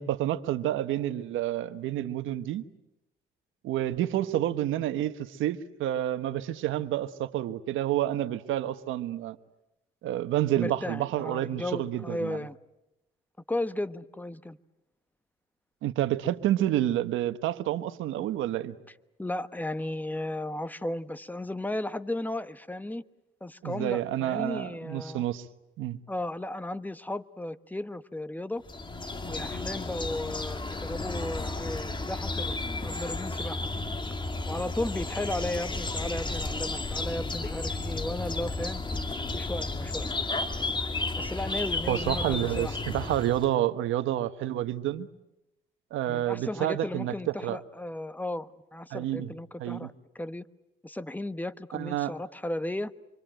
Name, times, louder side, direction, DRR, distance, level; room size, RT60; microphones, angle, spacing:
voice 1, 0.0-2.6 3.6-9.4 10.0-12.4 15.8-18.7 23.6-25.5 25.8-26.0 41.9-45.1 45.9-47.1 47.4-47.6 48.9-49.3 49.6-49.9 51.7-52.1, right 12 dB, 90° right, 11 dB, 1.3 m, -29 dB
voice 2, 10.6-12.6 13.5-14.6 19.2-23.0 23.4-25.3 26.1-28.6 29.2-32.6 32.8-33.7 34.5-38.8 39.3-40.1 41.2-42.7 46.1-50.4 50.8-52.9, left 1 dB, 10° left, 13 dB, 1.1 m, -35 dB
sound 1, 28.7-43.5, left 2 dB, 25° left, 2.6 m, -33 dB
26.5 x 24.5 x 9.1 m, 0.89 s
cardioid pair, 90°, 20 cm